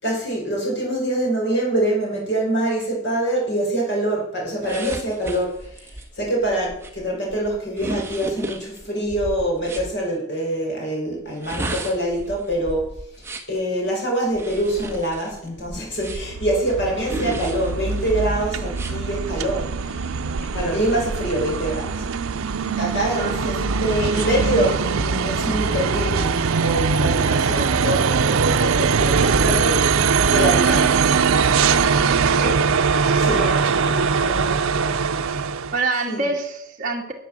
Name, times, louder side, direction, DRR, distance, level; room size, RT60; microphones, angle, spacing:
voice 1, 0.0-13.0 13.5-22.0 22.8-29.9 30.3-31.0 33.2-33.5 36.1-36.2, right 1 dB, 55° left, -1 dB, 5.2 m, -25 dB
sound 1, 4.6-9.9 11.3-13.6 14.3-16.4 17.0-18.1 18.7-18.9, right 1 dB, 10° right, 1.3 m, -34 dB
sound 2, 16.0-35.8, right 5 dB, 85° right, 0.6 m, -21 dB
voice 2, 32.3-32.6 33.3-34.6 35.7-37.1, right 2 dB, 40° right, -1 dB, 2.0 m, -27 dB
11.0 x 8.3 x 7.4 m, 0.73 s
head